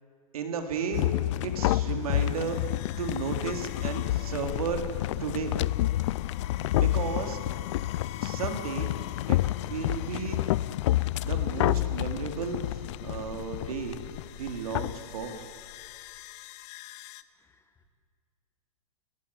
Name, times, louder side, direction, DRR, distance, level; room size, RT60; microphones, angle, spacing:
voice 1, 0.3-1.1 1.4-2.6 3.0-4.8 5.2-5.6 6.8-7.4 8.2-8.9 9.3-9.4 9.6-10.4 11.2-14.0 14.3-15.5, right 6 dB, 70° right, 5 dB, 3.8 m, -34 dB
sound 1, 0.9-15.0, left 15 dB, 50° left, 0.6 m, -29 dB
sound 2, 2.1-17.2, left 15 dB, 35° left, 0.9 m, -46 dB
voice 2, 17.3-17.9, left 6 dB, 10° left, 9 dB, 1.5 m, -67 dB
30.0 x 17.5 x 8.8 m, 2.2 s
hypercardioid pair, 140°, 19 cm